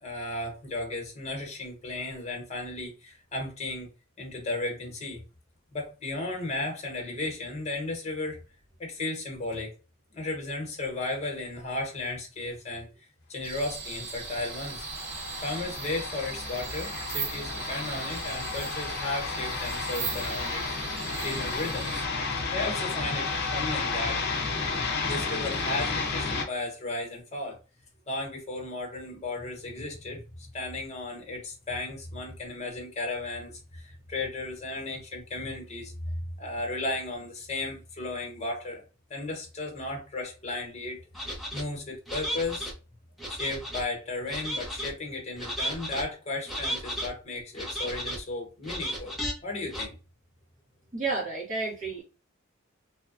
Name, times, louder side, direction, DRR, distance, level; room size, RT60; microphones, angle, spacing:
voice 1, 0.0-3.9 4.2-5.2 5.7-8.4 8.8-9.7 10.1-12.9 13.3-14.8 15.4-20.6 21.2-22.0 22.5-24.2 25.0-27.6 28.1-35.9 36.4-38.8 39.1-42.7 43.3-49.2 49.4-50.0, left 2 dB, 35° left, 1.0 m, -35 dB
sound 1, 13.4-22.1, right 6 dB, 70° right, 0.6 m, -38 dB
sound 2, 13.9-26.4, left 4 dB, 55° left, 0.6 m, -32 dB
sound 3, 41.1-41.6 42.1-42.7 43.2-43.8 44.3-44.9 45.4-46.0 46.5-47.1 47.5-48.2 48.6-49.3 49.7-49.8, equal, ahead, 0.5 m, -34 dB
voice 2, 50.9-52.0, right 3 dB, 40° right, 1.0 m, -31 dB
2.7 x 2.2 x 2.4 m
head